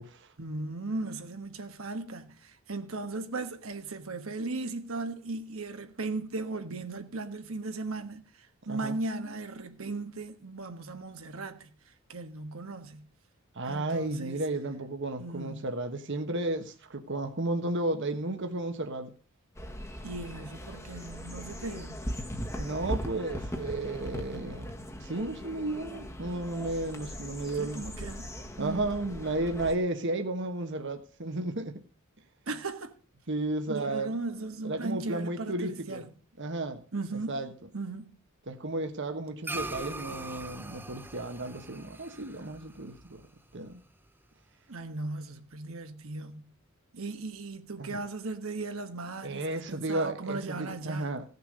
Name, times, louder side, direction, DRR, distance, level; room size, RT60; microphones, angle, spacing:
voice 1, 0.4-13.0 13.7-14.4 15.2-15.7 20.0-22.1 27.5-28.9 32.5-33.0 33.7-36.1 36.9-37.5 37.7-38.1 44.7-46.5 46.9-51.2, right 3 dB, 75° right, 1.4 m, -37 dB
voice 2, 8.6-9.0 13.5-19.1 22.6-24.7 25.0-27.8 28.6-31.8 33.3-34.2 34.6-36.0 36.4-36.8 37.3-37.5 38.5-43.2 43.5-43.8 47.8-48.0 49.2-51.2, right 2 dB, 60° right, 1.3 m, -33 dB
sound 1, 19.6-29.8, equal, 15° left, 1.4 m, -39 dB
sound 2, 39.4-44.1, right 2 dB, 10° right, 0.7 m, -42 dB
16.0 x 6.8 x 6.6 m
head